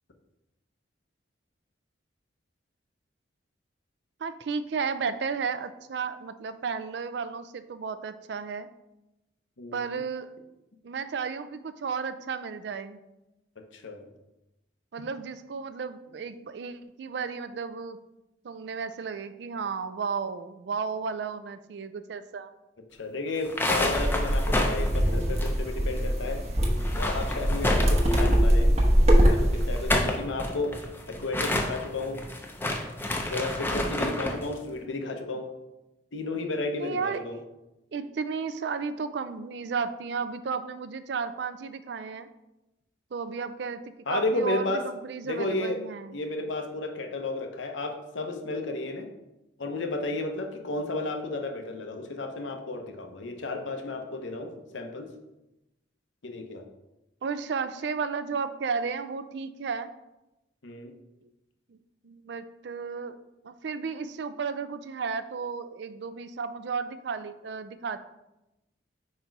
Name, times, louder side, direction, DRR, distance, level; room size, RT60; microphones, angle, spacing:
voice 1, 4.2-8.7 9.7-10.3 10.8-13.0 14.9-18.0 18.4-22.5 34.9-35.1 36.8-37.2 37.9-42.3 43.1-46.2 57.2-59.9 61.2-61.3 61.7-61.8 62.0-63.2 63.4-68.0, right 5 dB, 65° right, 12 dB, 0.4 m, -33 dB
voice 2, 13.7-14.1 23.0-26.4 27.0-28.7 29.2-30.7 31.1-32.2 33.3-35.5 36.1-37.4 44.1-44.9 45.2-45.8 46.1-49.1 49.6-55.1 56.2-56.6 60.6-60.9, left 2 dB, 85° left, 5 dB, 0.8 m, -32 dB
sound 1, 23.4-26.0 26.2-26.3 26.7-28.5 29.6-34.4, left 1 dB, 10° left, 0.5 m, -29 dB
sound 2, 23.9-30.0, equal, 35° right, 0.9 m, -23 dB
5.2 x 4.2 x 4.6 m, 0.95 s
head